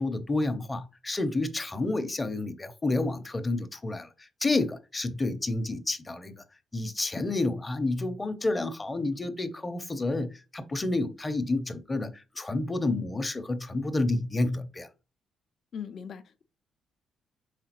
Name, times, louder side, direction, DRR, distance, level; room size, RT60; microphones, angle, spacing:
voice 1, 0.0-4.1 4.4-6.4 6.7-14.9, left 2 dB, 20° left, 0.7 m, -29 dB
voice 2, 15.7-16.4, left 7 dB, 55° left, 0.5 m, -39 dB
4.9 x 3.7 x 2.9 m
cardioid pair, 90°, 0 cm